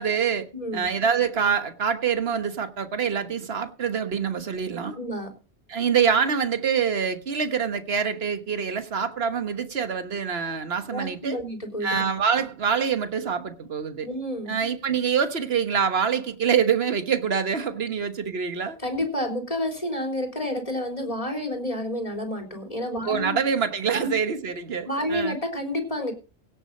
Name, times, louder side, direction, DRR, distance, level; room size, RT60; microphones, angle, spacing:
voice 1, 0.0-0.5 0.7-5.0 5.7-11.4 11.8-14.1 14.5-18.8 23.0-25.4, right 7 dB, 60° right, 1.5 m, -25 dB
voice 2, 0.5-0.9 4.9-5.3 10.9-12.0 14.0-14.6 18.8-23.3 23.9-24.1 24.9-26.1, left 1 dB, 30° left, 3.8 m, -29 dB
17.0 x 7.6 x 5.3 m
omnidirectional pair, 1.2 m